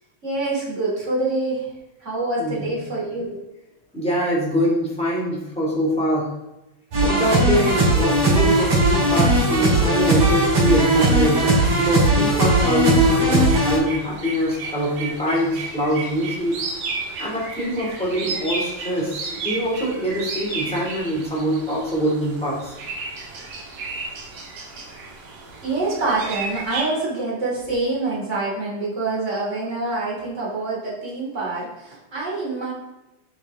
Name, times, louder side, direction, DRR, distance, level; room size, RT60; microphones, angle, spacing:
voice 1, 0.2-1.7 2.0-3.4 6.9-7.4 25.6-32.7, right 2 dB, 20° right, -5 dB, 2.8 m, -26 dB
voice 2, 3.9-6.3 7.0-11.5 11.8-16.6 17.2-22.7 23.1-23.2, equal, ahead, -4 dB, 1.9 m, -23 dB
sound 1, 6.9-13.8, right 1 dB, 50° right, 4.0 m, -18 dB
sound 2, 9.0-26.8, right 3 dB, 80° right, 4.0 m, -34 dB
10.5 x 5.6 x 3.7 m, 0.97 s
omnidirectional pair, 4.1 m